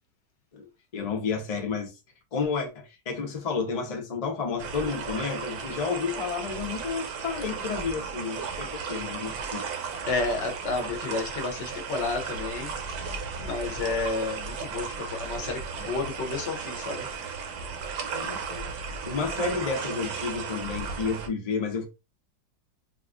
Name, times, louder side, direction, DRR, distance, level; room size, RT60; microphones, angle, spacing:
voice 1, 0.9-1.9 2.3-9.6 13.4-13.5 18.1-18.7 19.0-21.8, left 5 dB, 75° left, 0.3 m, -31 dB
sound 1, 4.6-21.3, right 5 dB, 65° right, 1.1 m, -35 dB
voice 2, 10.0-12.7 13.4-17.1 18.3-18.6, left 3 dB, 60° left, 0.8 m, -31 dB
4.1 x 2.4 x 2.4 m
omnidirectional pair, 1.9 m